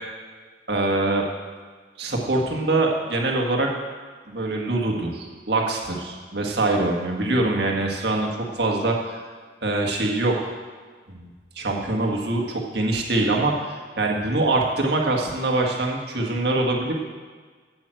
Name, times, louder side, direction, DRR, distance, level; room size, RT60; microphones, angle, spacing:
voice 1, 0.7-1.2 2.0-3.7 4.3-9.2 9.6-10.5 11.1-17.0, right 2 dB, 60° right, 0 dB, 1.8 m, -24 dB
9.1 x 8.5 x 7.7 m, 1.5 s
head